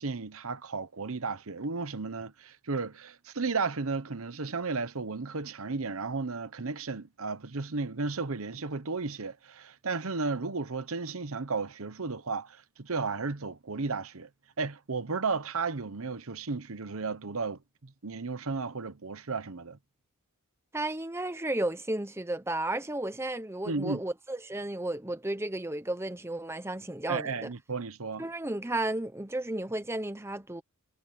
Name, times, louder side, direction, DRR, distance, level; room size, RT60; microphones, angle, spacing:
voice 1, 0.0-14.3 14.6-19.8 23.6-24.0 27.1-28.3, right 4 dB, 65° right, 1.0 m, -34 dB
voice 2, 20.7-27.5 28.2-30.6, right 1 dB, 10° right, 0.9 m, -33 dB
head